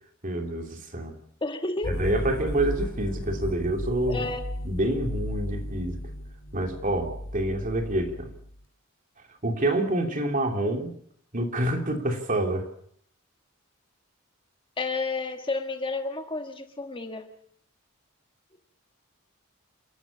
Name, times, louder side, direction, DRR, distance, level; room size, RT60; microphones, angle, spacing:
voice 1, 0.2-1.1 1.8-4.2 4.6-6.0 6.5-8.3 9.4-10.9 11.3-12.7, right 1 dB, 40° right, 3 dB, 3.0 m, -27 dB
voice 2, 1.4-2.0 4.1-4.4 14.8-17.3, left 3 dB, 25° left, 5 dB, 1.5 m, -31 dB
sound 1, 1.8-8.6, equal, 75° left, 3.0 m, -35 dB
28.0 x 12.5 x 8.3 m, 0.67 s
head